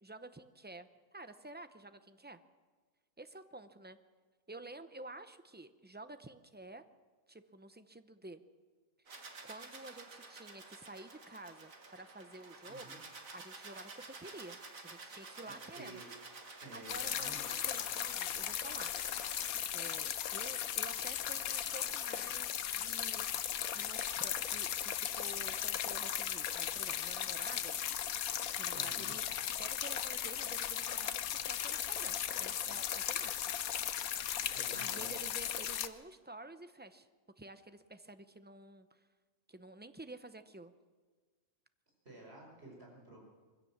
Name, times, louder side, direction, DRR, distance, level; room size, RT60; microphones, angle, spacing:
voice 1, 0.0-2.4 3.2-4.0 4.5-6.8 7.3-8.4 9.1-13.0 13.3-14.6 14.8-16.0 16.5-18.9 19.7-27.8 28.6-29.2 29.6-33.4 34.7-37.1 37.4-39.0 39.5-40.7, right 2 dB, 15° right, 10 dB, 0.4 m, -51 dB
sound 1, 9.1-19.5, right 3 dB, 70° right, 2.4 m, -51 dB
voice 2, 12.6-13.0 15.4-16.1 16.6-17.5 28.7-29.1 34.5-35.1 42.1-43.2, right 2 dB, 45° right, -2 dB, 5.2 m, -52 dB
sound 2, 16.9-35.9, left 10 dB, 80° left, 1.3 m, -37 dB
22.5 x 16.0 x 7.3 m, 1.4 s
omnidirectional pair, 1.5 m